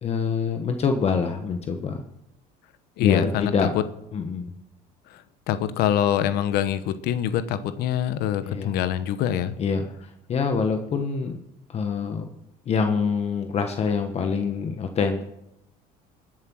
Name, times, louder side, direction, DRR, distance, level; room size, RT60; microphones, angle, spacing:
voice 1, 0.0-2.0 3.0-3.7 4.1-4.5 8.4-8.8 9.6-11.3 11.7-12.3 12.7-15.2, left 5 dB, 40° left, 6 dB, 1.3 m, -25 dB
voice 2, 3.0-3.8 5.1-5.2 5.5-9.5, left 10 dB, 70° left, 13 dB, 1.0 m, -24 dB
20.0 x 7.7 x 6.3 m, 0.83 s
cardioid pair, 125°, 17 cm